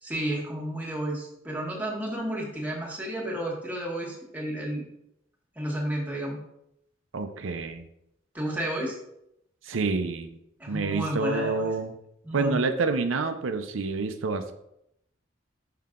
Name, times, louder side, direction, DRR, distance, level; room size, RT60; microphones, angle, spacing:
voice 1, 0.0-4.9 5.5-6.4 8.3-9.0 10.6-11.7 12.2-12.6, right 1 dB, 10° right, -2 dB, 1.3 m, -32 dB
voice 2, 7.1-7.9 9.7-10.4 10.7-12.0 12.3-14.5, right 3 dB, 90° right, 7 dB, 0.6 m, -28 dB
5.7 x 5.5 x 3.7 m, 0.80 s
head